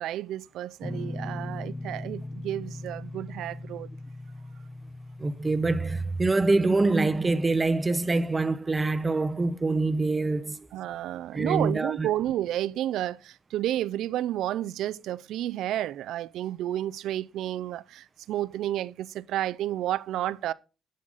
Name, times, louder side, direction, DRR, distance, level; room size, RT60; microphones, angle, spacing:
voice 1, 0.0-3.9 10.7-20.5, right 13 dB, 85° right, 0.3 m, -31 dB
Guitar, 0.8-6.1, left 2 dB, 20° left, 0.6 m, -38 dB
voice 2, 5.2-10.7 11.3-12.1, right 3 dB, 20° right, 0.7 m, -25 dB
11.0 x 6.4 x 3.9 m
cardioid pair, 90°, 0 cm